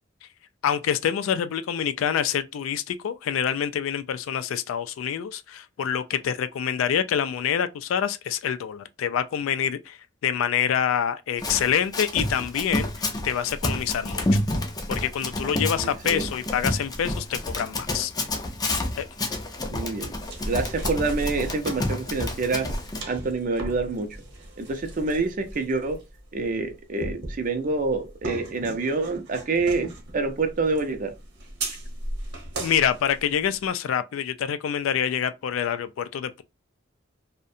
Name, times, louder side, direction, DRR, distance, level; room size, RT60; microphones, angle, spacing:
voice 1, 0.6-14.3 14.9-18.1 19.0-19.1 32.6-36.4, left 8 dB, 90° left, 0.3 m, -26 dB
Run, 11.4-23.0, left 1 dB, 20° left, 0.4 m, -29 dB
voice 2, 15.8-16.3 19.7-20.1 20.5-22.7 23.1-24.2 24.6-26.0 26.3-31.1, right 3 dB, 45° right, 0.5 m, -27 dB
sound 1, 20.2-33.7, right 2 dB, 60° right, 0.9 m, -37 dB
2.4 x 2.1 x 2.6 m
head